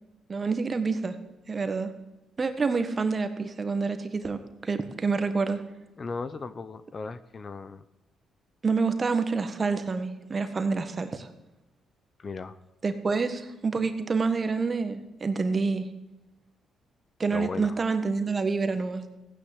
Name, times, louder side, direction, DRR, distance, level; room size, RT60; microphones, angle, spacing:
voice 1, 0.3-1.1 1.5-1.9 2.4-5.6 8.6-11.3 12.8-15.9 17.2-19.0, right 4 dB, 35° right, 9 dB, 1.6 m, -27 dB
voice 2, 6.0-7.8 12.2-12.6 17.3-17.8, left 4 dB, 40° left, 14 dB, 0.8 m, -36 dB
15.5 x 9.9 x 8.0 m, 1.0 s
cardioid pair, 90°, 0 cm